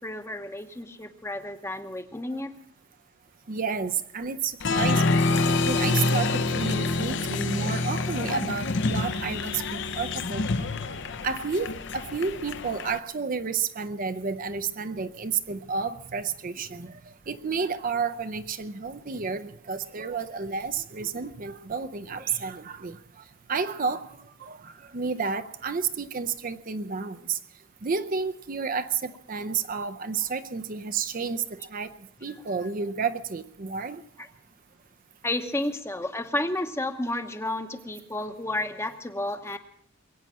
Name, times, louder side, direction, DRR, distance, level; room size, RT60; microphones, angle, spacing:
voice 1, 0.0-2.5 35.2-39.6, left 1 dB, 10° left, 8 dB, 0.9 m, -31 dB
voice 2, 3.5-5.3 5.6-10.7 11.2-17.0 17.3-23.2 23.5-27.4 27.8-32.0 32.2-34.0, right 5 dB, 40° right, 9 dB, 0.6 m, -31 dB
Applause, 4.6-13.0, left 3 dB, 55° left, 0.8 m, -27 dB
22.0 x 8.9 x 7.4 m, 0.66 s
head